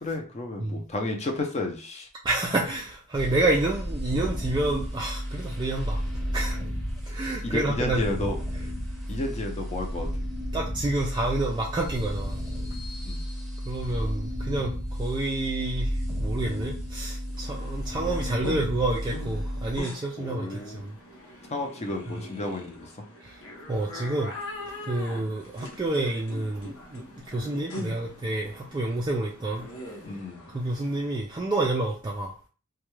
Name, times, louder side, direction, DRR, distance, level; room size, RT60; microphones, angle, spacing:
voice 1, 0.0-2.1 7.4-8.4 9.1-10.1 13.0-13.2 20.2-20.9 21.5-22.9 30.0-30.5, left 2 dB, 30° left, 2 dB, 0.6 m, -32 dB
voice 2, 2.2-6.0 6.3-6.6 7.0-8.0 10.5-12.4 13.6-21.0 22.1-22.2 23.2-23.4 23.7-24.4 24.8-29.6 30.5-32.3, right 2 dB, 20° right, -2 dB, 0.3 m, -29 dB
sound 1, 3.1-19.8, equal, ahead, 0.9 m, -32 dB
sound 2, 17.3-31.1, left 1 dB, 65° left, 0.8 m, -42 dB
2.3 x 2.2 x 3.1 m, 0.37 s
head